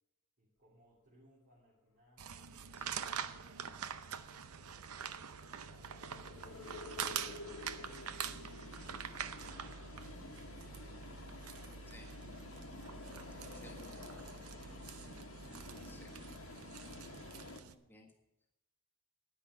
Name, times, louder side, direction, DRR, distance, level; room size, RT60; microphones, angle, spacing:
voice 1, 0.4-4.9 5.5-15.4, equal, 50° right, -7 dB, 2.9 m, -69 dB
sound 1, 2.2-17.7, right 7 dB, 85° right, 0.6 m, -45 dB
voice 2, 2.8-3.1 11.9-12.1 13.5-13.8 15.8-16.1 17.4-18.1, left 2 dB, 10° left, -1 dB, 1.5 m, -59 dB
sound 2, 3.5-17.6, left 2 dB, 70° left, 1.2 m, -51 dB
10.0 x 9.9 x 5.5 m, 0.95 s
head